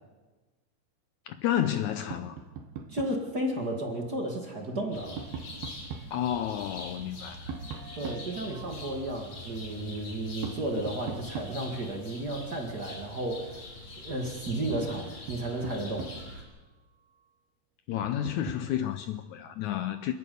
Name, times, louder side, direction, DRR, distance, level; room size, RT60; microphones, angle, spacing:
voice 1, 1.3-2.4 6.1-7.5 17.9-20.2, left 11 dB, 85° left, 1.7 m, -31 dB
Tap, 2.1-3.3 4.6-6.2 7.5-8.9 10.4-12.0 13.8-13.9 14.3-16.4 18.0-18.7, right 6 dB, 80° right, 3.4 m, -41 dB
voice 2, 2.9-5.2 7.9-13.7 14.0-16.1, right 1 dB, 35° right, 1.9 m, -33 dB
sound 1, 4.9-16.4, left 2 dB, 55° left, 6.4 m, -44 dB
27.0 x 10.5 x 9.4 m
omnidirectional pair, 4.3 m